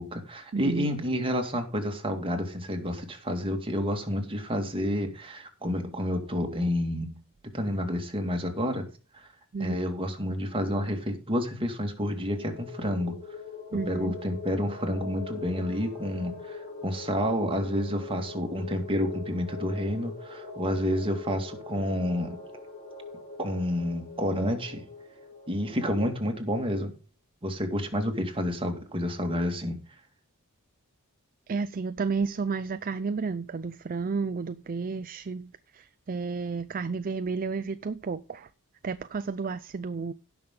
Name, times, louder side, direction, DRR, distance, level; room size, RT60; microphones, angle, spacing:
voice 1, 0.0-7.2 7.5-8.8 9.1-9.3 9.6-13.2 13.9-22.4 23.4-24.9 25.5-26.9 27.4-29.8, equal, 25° right, 2.1 m, -29 dB
voice 2, 0.5-1.1 9.5-9.9 13.7-14.1 31.5-38.5 38.8-40.1, right 4 dB, 40° right, 0.4 m, -32 dB
sound 1, 12.2-26.5, left 4 dB, 45° left, 4.0 m, -42 dB
17.0 x 6.1 x 3.8 m
head